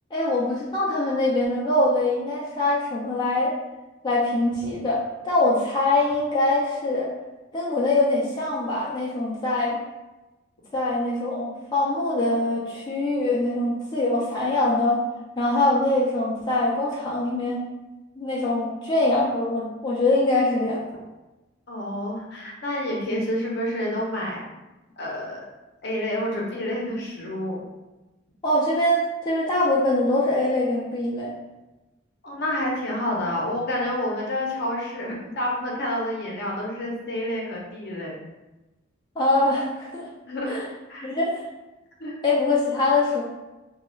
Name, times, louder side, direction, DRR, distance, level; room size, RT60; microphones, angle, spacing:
voice 1, 0.1-3.5 4.0-7.1 7.5-9.8 10.7-15.0 15.4-17.6 18.2-20.8 28.4-31.3 39.2-40.1 40.5-40.6 41.0-41.4 42.2-43.2, left 2 dB, 20° left, -7 dB, 0.5 m, -23 dB
voice 2, 21.7-24.4 25.0-25.4 25.8-27.6 32.2-38.2 40.3-40.6 40.9-41.1 42.0-42.1, left 1 dB, 55° left, -3 dB, 0.7 m, -29 dB
3.1 x 2.3 x 3.1 m, 1.1 s
head